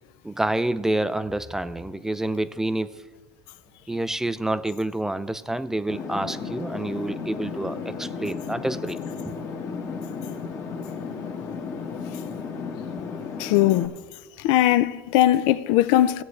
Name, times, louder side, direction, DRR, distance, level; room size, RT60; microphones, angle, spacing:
voice 1, 0.2-3.0 3.9-9.3, right 1 dB, 5° right, 0.3 m, -28 dB
sound 1, 5.9-13.9, left 5 dB, 35° left, 1.3 m, -34 dB
voice 2, 13.4-13.9 14.4-16.2, left 13 dB, 65° left, 0.4 m, -20 dB
17.5 x 8.0 x 3.2 m
supercardioid pair, 125°, 9 cm